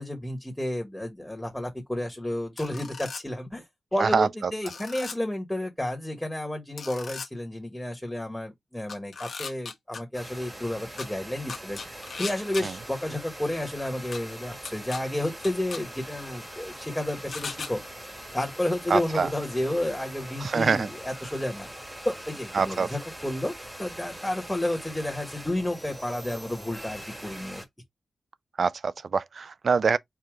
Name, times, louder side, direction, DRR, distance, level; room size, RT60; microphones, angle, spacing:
voice 1, 0.0-3.6 3.9-17.8 18.3-21.7 22.0-23.5 23.8-27.6, left 1 dB, 10° left, 1.5 m, -31 dB
sound 1, 2.6-3.2 4.7-5.2 6.8-7.3 8.9-10.0 11.0-11.1 11.5-12.6 14.1-14.2 14.7-15.0 15.4-15.8 17.3-17.7, left 5 dB, 65° left, 1.1 m, -37 dB
voice 2, 4.0-4.5 12.6-12.8 18.9-19.3 20.4-20.9 22.5-22.9 28.6-30.0, right 5 dB, 60° right, 0.4 m, -25 dB
sound 2, 10.1-27.7, right 1 dB, 15° right, 1.4 m, -42 dB
4.8 x 2.7 x 3.7 m
cardioid pair, 70°, 0 cm